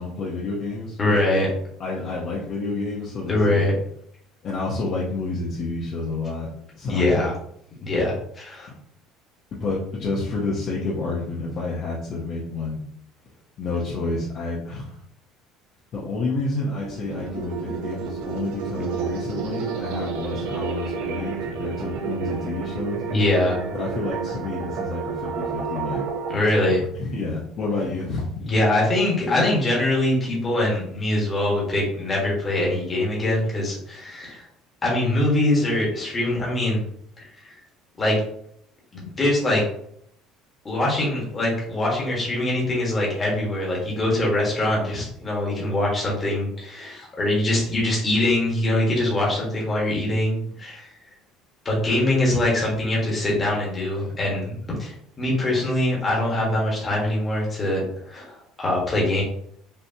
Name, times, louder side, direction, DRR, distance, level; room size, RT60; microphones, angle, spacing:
voice 1, 0.0-1.2 1.8-3.7 4.4-6.5 6.8-7.2 9.5-12.8 13.6-15.0 15.9-23.0 23.7-26.0 27.0-28.3, left 3 dB, 35° left, -5 dB, 0.8 m, -29 dB
voice 2, 1.0-1.5 3.3-3.7 6.9-7.3 7.8-8.7 23.1-23.6 26.3-26.8 28.4-34.5 34.8-36.8 37.2-37.5 38.0-38.2 38.9-39.6 40.6-50.9 51.6-59.2, left 1 dB, 15° left, -3 dB, 1.4 m, -23 dB
sound 1, 16.7-26.3, right 6 dB, 80° right, 0.7 m, -30 dB
5.5 x 3.1 x 2.8 m, 0.69 s
cardioid pair, 175°, 0 cm